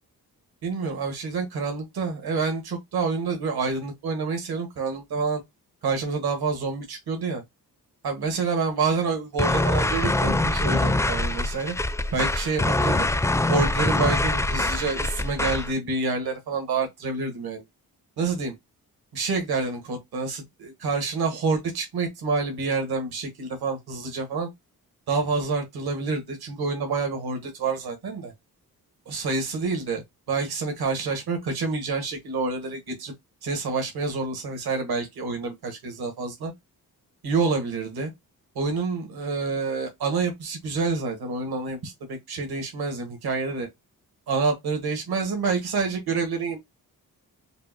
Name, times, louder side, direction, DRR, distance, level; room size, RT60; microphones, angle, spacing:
voice 1, 0.6-5.4 5.8-7.4 8.0-11.7 12.1-13.1 13.5-17.6 18.2-18.5 19.1-24.5 25.1-28.3 29.1-30.0 30.3-33.1 33.4-36.5 37.2-38.1 38.6-43.7 44.3-46.6, right 4 dB, 80° right, 1.7 m, -28 dB
sound 1, 9.4-15.7, left 2 dB, 10° left, 0.4 m, -24 dB
5.3 x 2.4 x 2.8 m
cardioid pair, 65°, 37 cm